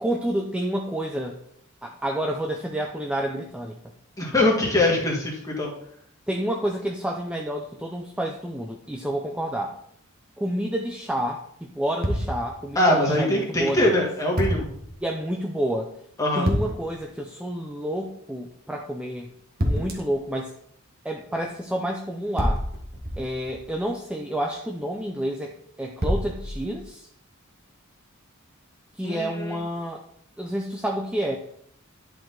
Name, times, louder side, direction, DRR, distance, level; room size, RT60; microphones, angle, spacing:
voice 1, 0.0-1.4 1.8-3.8 6.3-9.7 10.4-14.0 15.0-16.0 16.3-19.3 19.6-20.5 21.0-22.7 23.2-27.1 29.0-30.0 30.4-31.4, right 1 dB, 5° right, 1 dB, 0.5 m, -29 dB
voice 2, 4.2-5.7 12.8-14.7 16.2-16.5 29.0-29.6, left 1 dB, 15° left, -2 dB, 1.9 m, -22 dB
sound 1, 12.0-12.8 14.4-14.9 16.4-17.0 19.6-20.2 22.4-23.8 26.0-26.9, equal, 45° right, 1.5 m, -27 dB
11.0 x 4.8 x 3.9 m, 0.68 s
head